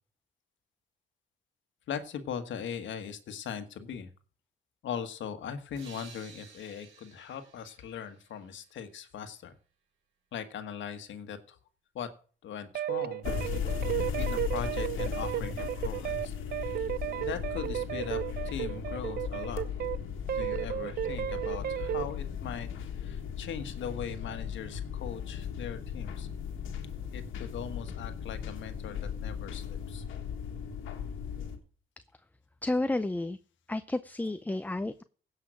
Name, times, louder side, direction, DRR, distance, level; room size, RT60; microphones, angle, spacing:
voice 1, 1.9-4.1 4.8-9.5 10.3-11.6 11.9-12.1 12.4-13.2 14.1-16.3 16.7-16.9 17.2-18.2 18.4-19.6 20.3-22.7 23.0-26.3 27.1-30.0, left 7 dB, 70° left, 9 dB, 1.5 m, -40 dB
sound 1, 5.8-9.3, right 5 dB, 80° right, 3.6 m, -54 dB
sound 2, 12.7-20.0 20.3-22.1, right 12 dB, 55° right, 0.4 m, -34 dB
sound 3, 13.2-31.6, left 7 dB, 85° left, 1.7 m, -37 dB
voice 2, 32.6-33.4 33.7-35.0, left 2 dB, 10° left, 12 dB, 0.5 m, -31 dB
16.5 x 5.8 x 6.3 m, 0.42 s
cardioid pair, 90°, 20 cm